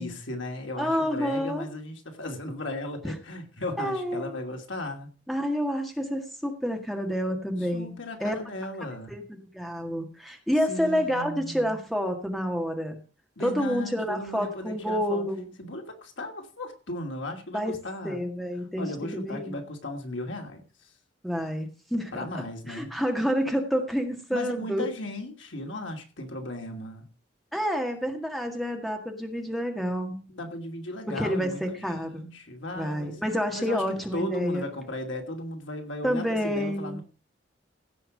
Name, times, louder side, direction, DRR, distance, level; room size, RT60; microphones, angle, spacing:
voice 1, 0.0-5.1 7.7-9.1 10.7-11.8 13.4-15.3 15.6-18.2 18.6-20.6 22.1-23.0 24.3-27.1 30.3-33.2 33.5-37.0, left 1 dB, 80° left, 3 dB, 2.7 m, -36 dB
voice 2, 0.8-1.7 3.0-3.1 3.8-4.3 5.3-7.9 8.2-8.4 9.1-13.0 13.4-15.5 17.5-17.8 18.0-19.6 21.2-22.3 22.7-24.8 27.5-30.2 31.1-32.2 32.8-34.6 36.0-37.0, equal, ahead, 3 dB, 1.7 m, -29 dB
16.0 x 5.8 x 6.4 m, 0.36 s
head